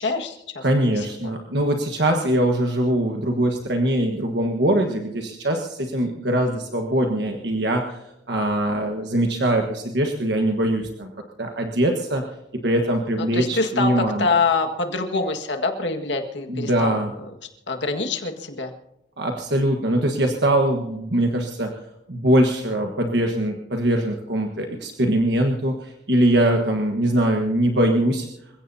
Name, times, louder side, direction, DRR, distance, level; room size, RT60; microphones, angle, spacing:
voice 1, 0.0-0.6 0.9-1.3 13.3-17.4 17.7-18.7, left 3 dB, 85° left, 4 dB, 1.8 m, -25 dB
voice 2, 0.6-8.0 8.3-11.1 11.4-12.2 12.6-14.3 16.5-17.1 19.2-21.7 22.1-28.3, right 1 dB, 70° right, 3 dB, 1.4 m, -22 dB
27.5 x 16.0 x 2.8 m, 0.88 s
head